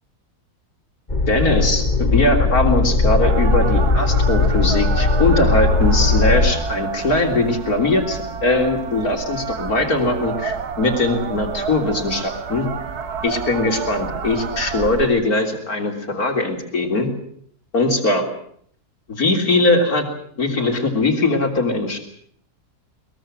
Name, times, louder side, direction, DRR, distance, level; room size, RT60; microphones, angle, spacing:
sound 1, 1.1-6.5, left 3 dB, 30° left, 2.6 m, -18 dB
voice 1, 1.3-12.7 13.2-17.1 17.7-18.3 19.1-20.1 20.4-22.0, left 2 dB, 65° left, 4 dB, 3.9 m, -20 dB
sound 2, 3.2-15.1, right 6 dB, 75° right, 1.9 m, -29 dB
22.5 x 22.0 x 7.7 m, 0.62 s
omnidirectional pair, 1.7 m